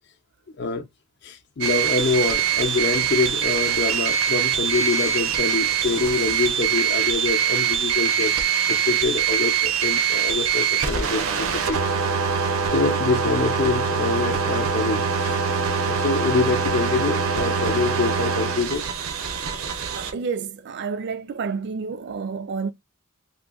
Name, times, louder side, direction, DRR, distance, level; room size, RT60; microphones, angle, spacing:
voice 1, 1.2-8.3 8.7-11.9 12.7-15.4 15.8-18.8, left 4 dB, 55° left, 0.6 m, -25 dB
sound 1, 1.6-20.1, right 7 dB, 90° right, 0.7 m, -23 dB
voice 2, 20.0-22.7, right 5 dB, 55° right, 0.4 m, -29 dB
3.8 x 2.6 x 2.3 m
head